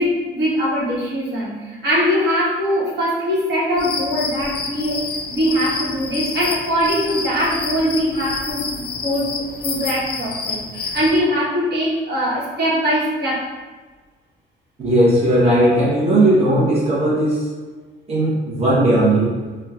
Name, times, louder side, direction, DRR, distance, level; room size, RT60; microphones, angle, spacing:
voice 1, 0.0-5.0 5.3-13.5, equal, 55° right, -7 dB, 1.2 m, -21 dB
sound 1, 3.8-11.2, left 4 dB, 50° left, 0.4 m, -28 dB
voice 2, 14.8-17.4 18.1-19.3, right 1 dB, 30° right, -8 dB, 1.0 m, -16 dB
3.8 x 2.2 x 2.4 m, 1.3 s
cardioid pair, 90°, 20 cm